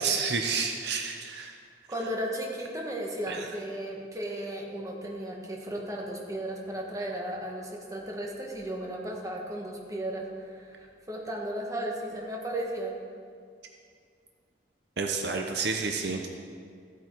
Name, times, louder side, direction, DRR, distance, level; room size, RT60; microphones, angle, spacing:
voice 1, 0.0-1.5 3.3-3.5 15.0-16.2, right 5 dB, 65° right, 3 dB, 0.8 m, -30 dB
voice 2, 1.9-12.9, right 1 dB, 20° right, -1 dB, 1.5 m, -35 dB
14.5 x 8.3 x 4.6 m, 2.2 s
head